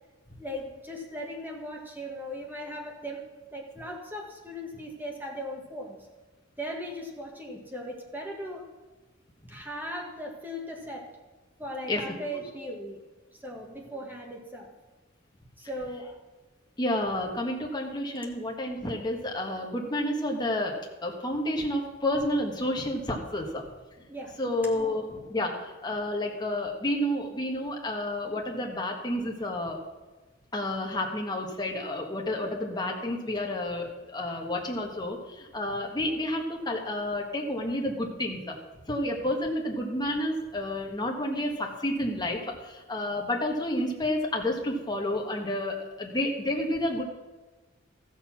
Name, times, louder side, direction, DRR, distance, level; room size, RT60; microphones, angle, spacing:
voice 1, 0.4-3.2 3.5-6.1 6.6-8.7 9.5-11.1 11.6-13.0 13.3-14.7 15.6-16.2 24.1-24.4, equal, 10° right, 0 dB, 1.7 m, -38 dB
voice 2, 16.8-23.6 24.4-29.8 30.5-38.5 38.9-47.0, left 1 dB, 20° left, 0 dB, 1.6 m, -30 dB
14.0 x 6.7 x 5.9 m, 1.2 s
head